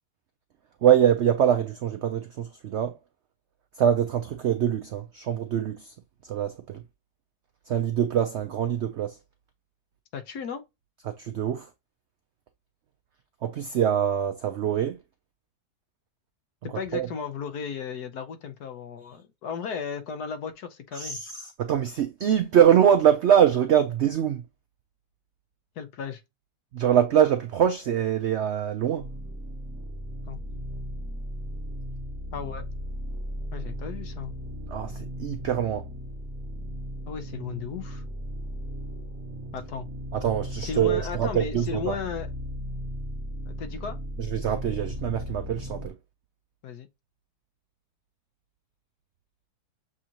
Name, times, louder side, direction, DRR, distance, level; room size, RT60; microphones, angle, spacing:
voice 1, 0.8-3.0 3.8-5.9 6.3-6.8 7.7-9.2 11.1-11.7 13.4-15.0 16.9-17.1 20.9-24.4 26.7-29.1 34.7-35.9 40.1-42.0 44.2-45.9, right 9 dB, 80° right, 0.6 m, -24 dB
voice 2, 10.1-10.6 16.7-21.2 25.8-26.2 30.3-30.4 32.3-32.6 33.5-34.3 37.1-38.0 39.5-39.9 40.6-42.3 43.5-44.0 46.6-46.9, left 6 dB, 75° left, 1.3 m, -35 dB
sound 1, 29.0-45.9, equal, 55° right, 1.3 m, -36 dB
7.2 x 2.5 x 2.9 m
omnidirectional pair, 1.7 m